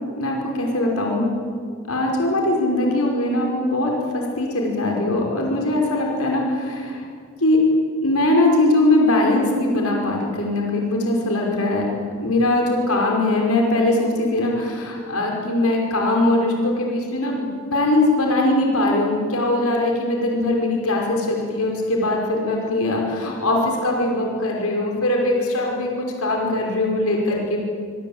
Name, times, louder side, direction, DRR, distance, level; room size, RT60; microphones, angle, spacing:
voice 1, 0.2-1.3 1.9-7.0 7.4-7.6 8.0-11.9 12.2-27.6, left 2 dB, 85° left, 0 dB, 5.4 m, -21 dB
25.0 x 24.5 x 8.8 m, 2.1 s
head